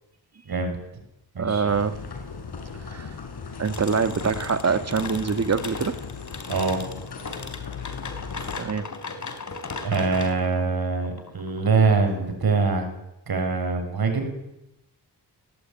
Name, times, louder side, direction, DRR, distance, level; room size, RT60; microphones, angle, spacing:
voice 1, 0.4-0.8 1.3-1.6 6.5-6.8 9.8-12.8 13.3-14.3, right 4 dB, 65° right, 5 dB, 6.7 m, -23 dB
voice 2, 1.4-2.0 2.7-3.1 3.6-6.0 8.6-8.9, right 5 dB, 40° right, 10 dB, 1.9 m, -25 dB
sound 1, 1.7-8.6, left 5 dB, 75° left, 6.1 m, -38 dB
sound 2, 3.6-12.3, left 4 dB, 45° left, 3.7 m, -37 dB
29.5 x 20.5 x 9.2 m, 0.88 s
wide cardioid pair, 145°, 40 cm